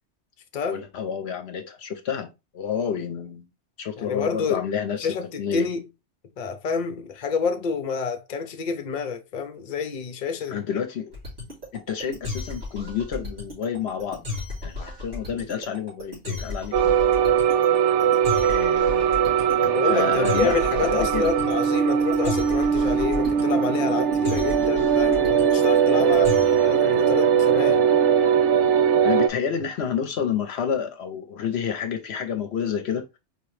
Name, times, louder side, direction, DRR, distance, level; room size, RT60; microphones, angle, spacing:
voice 1, 0.7-3.5 3.8-5.1 5.4-5.7 10.5-11.1 11.7-17.3 18.5-19.2 19.9-21.3 29.0-33.2, left 7 dB, 70° left, 0.9 m, -29 dB
voice 2, 4.0-4.7 5.0-5.9 6.4-10.6 19.6-27.9, left 5 dB, 45° left, 0.7 m, -28 dB
sound 1, 11.1-26.8, left 3 dB, 65° right, 3.1 m, -34 dB
sound 2, 16.7-29.3, right 8 dB, 80° right, 0.9 m, -20 dB
4.7 x 2.9 x 3.2 m
omnidirectional pair, 1.2 m